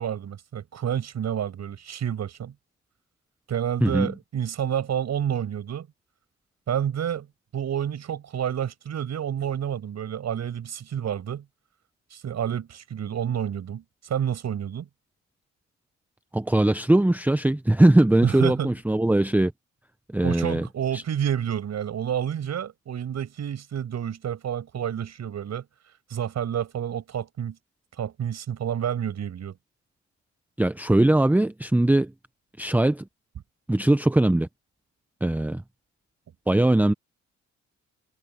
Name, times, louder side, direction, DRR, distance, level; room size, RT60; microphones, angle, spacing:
voice 1, 0.0-2.5 3.5-5.9 6.7-7.3 7.5-11.4 12.1-14.9 18.2-18.7 20.2-25.6 26.1-27.6 28.0-29.5, right 9 dB, 60° right, 7.4 m, -29 dB
voice 2, 3.8-4.1 16.3-19.5 20.1-20.7 20.9-21.0 30.6-32.1 32.6-33.0 33.7-34.5 35.2-35.6 36.5-36.9, right 1 dB, 5° right, 0.7 m, -20 dB
cardioid pair, 90°, 30 cm